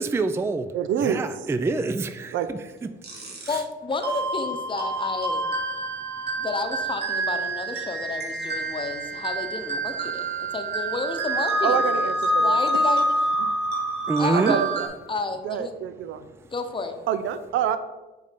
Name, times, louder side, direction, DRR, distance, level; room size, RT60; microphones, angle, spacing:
voice 1, 0.0-0.7 1.0-2.9 3.4-3.6 14.1-14.6 16.3-16.4, right 3 dB, 15° right, 10 dB, 0.3 m, -26 dB
voice 2, 0.7-1.2 2.3-2.5 11.6-12.6 14.3-14.9 15.4-16.3 17.1-17.8, right 9 dB, 70° right, 11 dB, 0.5 m, -26 dB
sound 1, 3.0-3.6 4.0-14.9, right 1 dB, 55° right, 1.7 m, -27 dB
voice 3, 3.5-5.4 6.4-12.1 12.4-13.1 14.2-14.6 15.1-15.7 16.5-17.0, left 3 dB, 25° left, 6 dB, 0.8 m, -31 dB
5.2 x 4.0 x 5.2 m, 1.1 s
cardioid pair, 90°, 20 cm